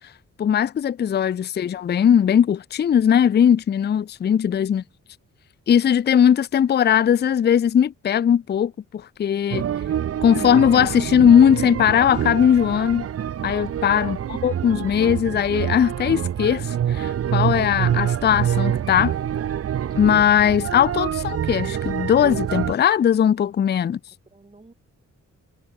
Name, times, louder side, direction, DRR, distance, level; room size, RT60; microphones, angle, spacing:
voice 1, 0.4-4.8 5.7-9.7 10.2-13.1 13.4-14.2 14.4-19.1 20.0-24.0, left 9 dB, 35° left, 0.4 m, -19 dB
voice 2, 4.6-5.0 24.1-24.7, right 3 dB, 20° right, 7.4 m, -55 dB
sound 1, 9.5-22.7, right 9 dB, 50° right, 0.7 m, -26 dB
wide cardioid pair, 140°, 31 cm